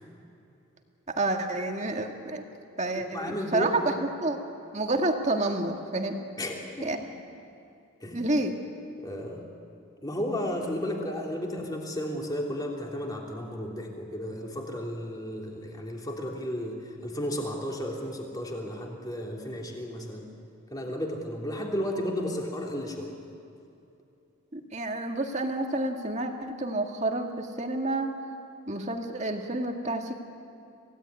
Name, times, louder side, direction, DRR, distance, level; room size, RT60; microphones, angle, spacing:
voice 1, 1.1-2.4 2.8-4.4 4.7-6.2 6.8-7.0 8.1-8.5 24.5-28.2 28.7-30.1, right 2 dB, 30° right, 3 dB, 1.9 m, -29 dB
voice 2, 2.9-3.9 6.4-7.0 8.0-8.2 9.0-9.5 10.0-20.3 20.7-23.1, equal, 20° left, 0 dB, 3.1 m, -33 dB
26.5 x 17.0 x 9.5 m, 2.7 s
head